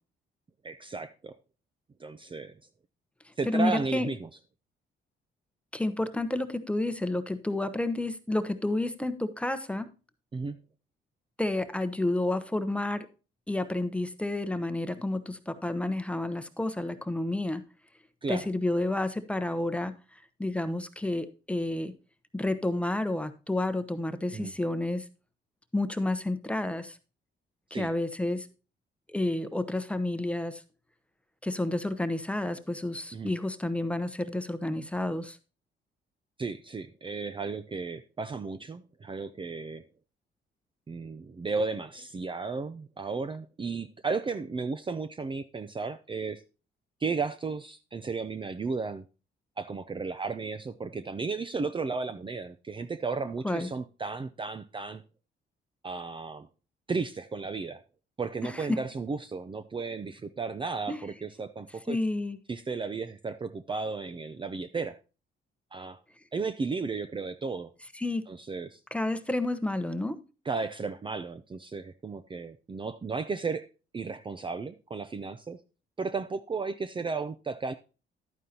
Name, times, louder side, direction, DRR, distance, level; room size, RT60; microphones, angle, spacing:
voice 1, 0.6-1.3 2.0-2.5 3.4-4.3 10.3-10.6 18.2-18.5 24.3-24.5 27.7-27.9 33.1-33.3 36.4-39.8 40.9-46.4 47.0-49.1 49.6-55.0 55.8-56.5 56.9-57.8 58.2-62.0 62.5-65.0 65.7-66.0 66.3-67.7 68.3-68.8 70.4-73.6 73.9-75.6 76.0-77.7, right 4 dB, 25° right, 11 dB, 0.6 m, -34 dB
voice 2, 3.5-4.1 5.7-9.9 11.4-13.1 13.5-17.6 18.3-19.9 20.4-21.9 22.3-25.0 25.7-27.0 27.7-28.5 29.1-30.6 31.4-35.4 53.4-53.7 58.4-58.8 60.9-61.0 61.9-62.4 67.9-68.2 68.9-70.2, left 2 dB, 5° left, 11 dB, 0.9 m, -30 dB
11.5 x 9.1 x 2.9 m, 0.33 s
cardioid pair, 90°, 20 cm